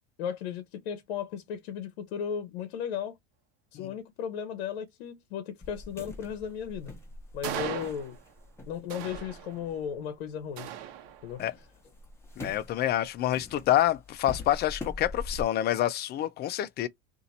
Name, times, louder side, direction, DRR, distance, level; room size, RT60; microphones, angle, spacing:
voice 1, 0.2-3.2 3.7-6.9 7.3-8.2 8.7-10.7 11.2-11.4, left 8 dB, 75° left, 0.8 m, -35 dB
sound 1, 5.6-10.7 11.1-15.4, left 3 dB, 10° left, 1.0 m, -44 dB
sound 2, 7.4-8.4 8.9-9.9 10.6-11.5, right 10 dB, 60° right, 1.0 m, -39 dB
voice 2, 12.4-16.9, left 13 dB, 30° left, 0.5 m, -27 dB
2.8 x 2.6 x 4.0 m
supercardioid pair, 120°, 31 cm